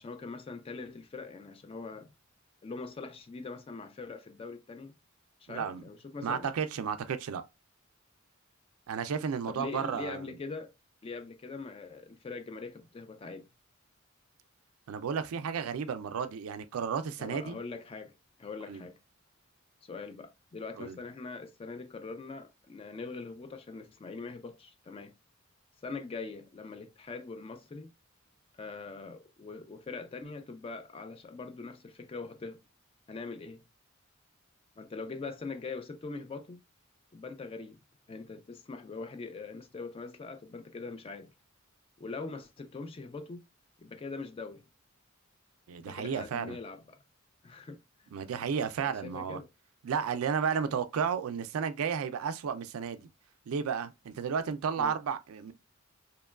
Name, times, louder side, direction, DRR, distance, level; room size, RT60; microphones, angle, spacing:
voice 1, 0.0-2.1 2.6-4.9 5.4-6.5 9.5-10.7 11.0-13.5 17.2-18.1 18.4-18.9 19.8-25.1 25.8-27.9 28.6-32.6 33.1-33.6 34.8-36.6 37.1-37.8 38.1-41.3 42.0-43.4 43.8-44.6 45.8-47.0 47.4-47.8 48.8-49.5 54.8-55.0, left 4 dB, 25° left, 0.3 m, -42 dB
voice 2, 5.5-5.8 6.2-7.4 8.9-10.2 14.9-17.6 18.7-18.8 20.8-21.0 45.7-46.6 48.1-49.4 49.8-53.0 53.5-55.5, right 6 dB, 90° right, 0.4 m, -33 dB
2.9 x 2.2 x 2.2 m
head